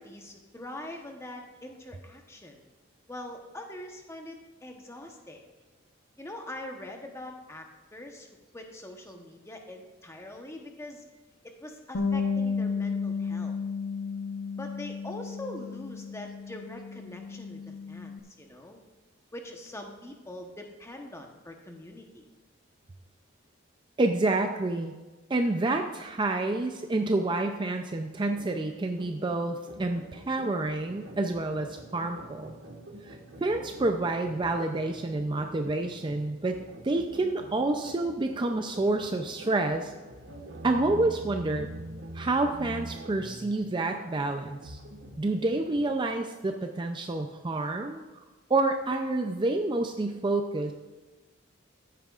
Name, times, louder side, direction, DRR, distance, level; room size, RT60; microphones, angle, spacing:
voice 1, 0.0-2.6 3.1-5.4 6.2-7.7 7.9-8.3 8.5-11.1 11.4-13.6 14.6-17.6 17.9-18.8 19.3-22.3, left 1 dB, 15° left, 3 dB, 0.9 m, -43 dB
Bass guitar, 11.9-18.2, left 5 dB, 65° left, 0.8 m, -33 dB
voice 2, 24.0-25.0 25.3-32.5 33.1-36.6 36.8-39.9 40.6-41.7 42.1-44.8 45.2-48.0 48.5-50.7, right 2 dB, 25° right, 5 dB, 0.4 m, -28 dB
sound 1, 28.3-45.8, right 1 dB, 75° right, 1.4 m, -45 dB
14.0 x 9.1 x 2.4 m, 1.2 s
head